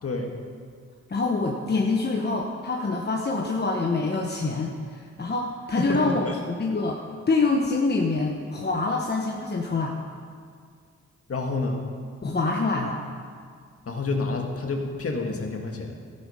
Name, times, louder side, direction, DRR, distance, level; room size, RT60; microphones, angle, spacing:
voice 1, 0.0-0.3 5.8-6.3 11.3-11.8 13.9-15.9, left 3 dB, 50° left, 2 dB, 1.8 m, -28 dB
voice 2, 1.1-7.0 7.3-10.0 12.2-13.0, left 3 dB, 35° left, 0 dB, 1.1 m, -26 dB
14.0 x 8.5 x 5.0 m, 2.1 s
cardioid pair, 80°, 30 cm